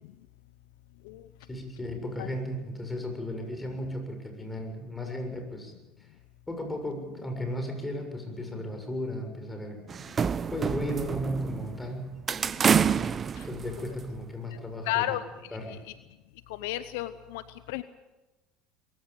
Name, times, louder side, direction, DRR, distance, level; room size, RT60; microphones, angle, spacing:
voice 1, 1.5-5.7 6.0-6.1 6.5-9.8 10.5-12.2 13.4-15.2 15.5-15.8, equal, 15° left, 5 dB, 7.1 m, -35 dB
sound 1, 9.9-11.8 12.3-14.2, right 7 dB, 35° right, 0.8 m, -27 dB
voice 2, 14.9-15.2 15.7-15.9 16.6-17.4 17.7-17.8, left 15 dB, 75° left, 13 dB, 0.8 m, -32 dB
22.5 x 15.5 x 9.1 m, 1.1 s
hypercardioid pair, 75°, 0 cm